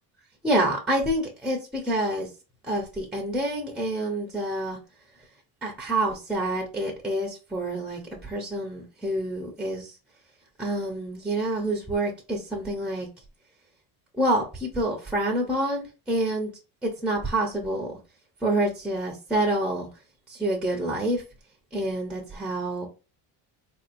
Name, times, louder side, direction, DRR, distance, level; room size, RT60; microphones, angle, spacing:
voice 1, 0.4-2.3 2.6-4.8 5.6-9.9 10.6-13.1 14.2-16.5 16.8-17.9 18.4-19.9 20.3-21.2 21.7-22.9, right 1 dB, ahead, 0.7 m, -27 dB
3.9 x 2.9 x 2.5 m
cardioid pair, 115°, 49 cm